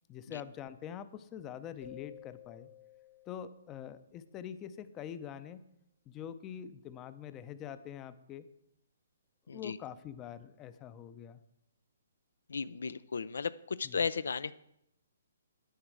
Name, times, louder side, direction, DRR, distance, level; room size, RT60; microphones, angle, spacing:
voice 1, 0.1-2.7 3.3-5.6 6.1-8.4 9.5-11.4 13.8-14.0, left 9 dB, 20° left, 13 dB, 0.6 m, -45 dB
sound 1, 1.8-4.5, left 11 dB, 50° left, 1.1 m, -54 dB
voice 2, 12.5-14.5, left 5 dB, 75° left, 16 dB, 0.4 m, -35 dB
10.0 x 8.7 x 4.7 m, 0.81 s
hypercardioid pair, 145°, 0 cm